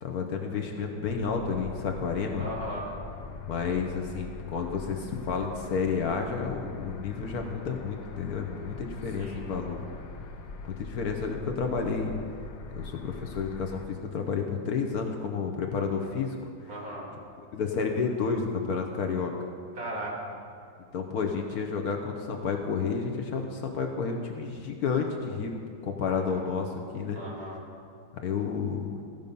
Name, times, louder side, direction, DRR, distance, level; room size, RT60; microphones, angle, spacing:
voice 1, 0.0-2.5 3.5-9.9 10.8-12.2 12.7-16.4 16.6-16.7 17.5-19.3 20.9-25.5 25.8-27.2 28.2-28.9, left 5 dB, 65° left, 3 dB, 1.1 m, -31 dB
sound 1, 1.1-13.9, left 4 dB, 80° left, 1.5 m, -42 dB
voice 2, 2.4-2.9 9.2-9.4 16.7-17.0 19.8-20.4 26.0-26.4 27.1-27.6, equal, 50° right, -5 dB, 2.8 m, -37 dB
14.5 x 5.4 x 5.3 m, 2.3 s
omnidirectional pair, 2.0 m